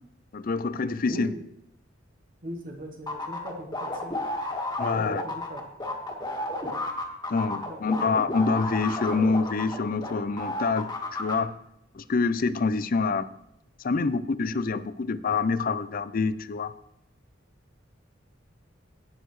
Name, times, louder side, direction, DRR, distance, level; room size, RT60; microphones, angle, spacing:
voice 1, 0.3-1.3 4.8-5.2 7.3-10.9 11.2-11.5 11.9-13.3 13.8-16.7, left 4 dB, 50° left, 14 dB, 0.5 m, -26 dB
voice 2, 1.1-1.4 2.4-4.2 4.9-5.6 7.5-7.8, equal, 45° right, 3 dB, 1.2 m, -40 dB
sound 1, 3.1-10.1 10.4-11.3, left 2 dB, 20° left, 1.8 m, -32 dB
18.0 x 6.5 x 3.2 m, 0.79 s
head